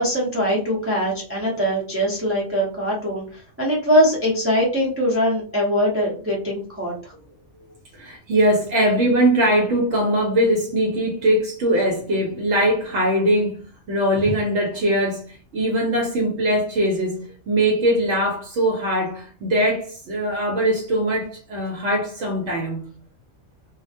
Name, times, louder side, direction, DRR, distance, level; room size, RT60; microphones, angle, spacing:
voice 1, 0.0-7.1, equal, 15° right, -5 dB, 0.4 m, -22 dB
voice 2, 7.9-13.6 13.9-22.9, right 1 dB, 70° right, 0 dB, 0.9 m, -21 dB
2.3 x 2.1 x 2.6 m, 0.42 s
omnidirectional pair, 1.3 m